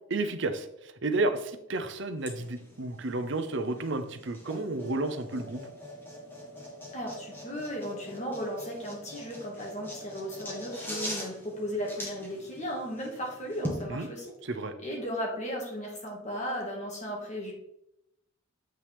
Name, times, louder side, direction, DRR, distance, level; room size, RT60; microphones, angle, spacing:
voice 1, 0.1-5.6 13.9-14.1 14.4-14.7, right 2 dB, 60° right, 9 dB, 0.7 m, -31 dB
sound 1, 2.2-13.8, equal, 10° left, 1.6 m, -42 dB
voice 2, 6.9-14.3 14.8-17.5, equal, 35° left, -1 dB, 1.9 m, -36 dB
8.2 x 5.9 x 3.5 m, 0.81 s
head